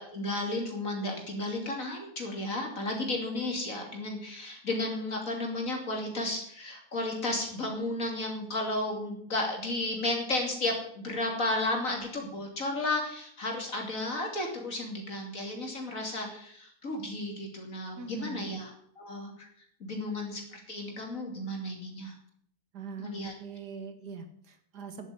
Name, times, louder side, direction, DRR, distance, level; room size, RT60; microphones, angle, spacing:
voice 1, 0.0-19.5 19.8-22.1 23.0-23.3, left 2 dB, 55° left, 1 dB, 3.2 m, -33 dB
voice 2, 18.0-18.5 22.7-25.1, right 5 dB, 85° right, 8 dB, 2.3 m, -42 dB
11.0 x 8.2 x 9.6 m, 0.65 s
omnidirectional pair, 1.7 m